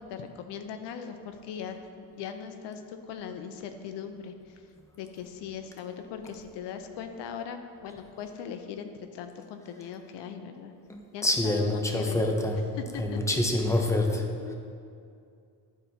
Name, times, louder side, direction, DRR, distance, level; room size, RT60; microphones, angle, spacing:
voice 1, 0.0-1.8 2.1-4.6 5.0-10.7 11.1-12.3 12.8-13.4 13.7-13.9 14.4-14.5, left 7 dB, 90° left, 7 dB, 0.6 m, -39 dB
voice 2, 10.9-12.6 13.0-14.3, left 1 dB, 5° left, 3 dB, 0.8 m, -26 dB
12.0 x 4.3 x 2.7 m, 2.4 s
cardioid pair, 90°, 41 cm